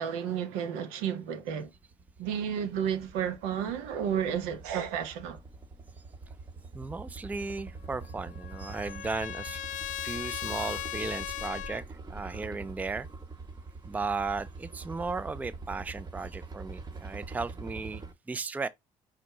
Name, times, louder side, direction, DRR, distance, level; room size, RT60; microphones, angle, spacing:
voice 1, 0.0-1.7 2.2-5.4, right 8 dB, 80° right, 0.7 m, -32 dB
sound 1, 1.3-18.1, right 3 dB, 25° right, 0.8 m, -44 dB
voice 2, 6.7-13.1 13.8-18.0 18.3-18.7, right 4 dB, 10° right, 0.3 m, -36 dB
Trumpet, 8.0-11.8, left 13 dB, 55° left, 0.5 m, -38 dB
5.1 x 2.1 x 3.0 m
supercardioid pair, 70°, 16 cm